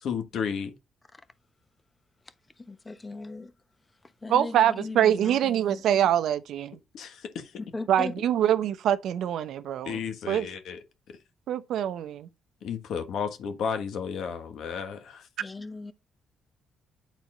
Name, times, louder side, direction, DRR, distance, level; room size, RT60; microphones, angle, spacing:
voice 1, 0.0-0.7 6.9-7.5 9.8-10.8 11.1-11.2 12.6-15.3, left 6 dB, 70° left, 1.4 m, -33 dB
voice 2, 2.6-3.5 4.0-5.8 7.6-8.1 15.4-15.9, left 3 dB, 20° left, 1.0 m, -38 dB
voice 3, 4.3-6.8 7.9-10.0 10.3-10.5 11.5-12.3, right 10 dB, 75° right, 0.6 m, -24 dB
9.1 x 4.1 x 3.8 m
cardioid pair, 90°, 0 cm